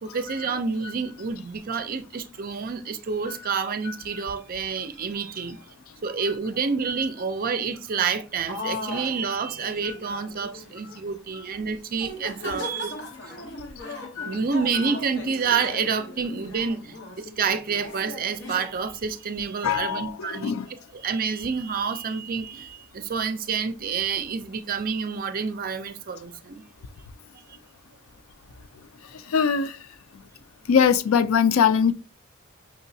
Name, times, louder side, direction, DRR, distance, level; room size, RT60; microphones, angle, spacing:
voice 1, 0.0-5.6 6.0-12.9 14.3-20.5 20.9-26.6, right 5 dB, 45° right, 0.5 m, -28 dB
sound 1, 8.5-11.0 11.5-11.7 11.9-18.7, left 2 dB, 60° left, 1.0 m, -38 dB
voice 2, 19.6-20.7 29.1-29.8 30.7-31.9, left 7 dB, 85° left, 0.4 m, -22 dB
5.5 x 2.9 x 2.7 m
head